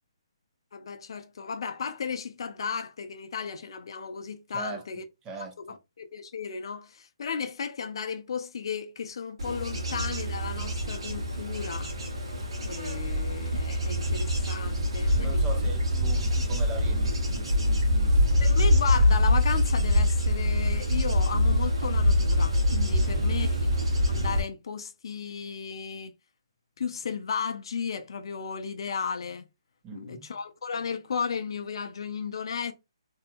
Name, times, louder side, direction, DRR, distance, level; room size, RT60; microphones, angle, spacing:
voice 1, 0.7-5.1 5.6-11.9 12.6-15.4 18.4-23.6 24.1-26.1 26.8-29.4 29.9-32.7, left 6 dB, 60° left, 0.4 m, -34 dB
voice 2, 4.5-4.8 5.2-5.6 15.2-18.4 23.0-23.4 29.8-30.4, right 3 dB, 20° right, 0.5 m, -41 dB
Bird / Insect / Wind, 9.4-24.4, left 1 dB, 70° right, 1.2 m, -25 dB
2.7 x 2.2 x 2.5 m
hypercardioid pair, 150°, 3 cm